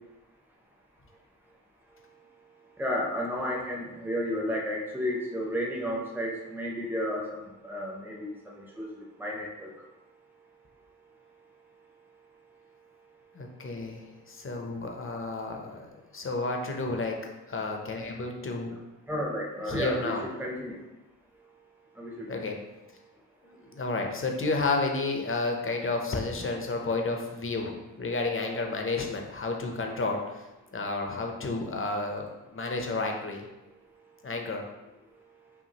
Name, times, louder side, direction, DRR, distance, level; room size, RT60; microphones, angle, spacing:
voice 1, 2.8-8.9 9.2-9.7 19.1-20.8 22.0-22.6, equal, 5° right, -2 dB, 0.6 m, -32 dB
voice 2, 13.3-17.2 17.5-18.8 19.7-20.3 22.3-22.6 23.4-30.2 30.7-33.5 34.2-34.7, left 3 dB, 35° left, 2 dB, 0.6 m, -31 dB
5.7 x 2.4 x 2.8 m, 1.0 s
wide cardioid pair, 110°, 37 cm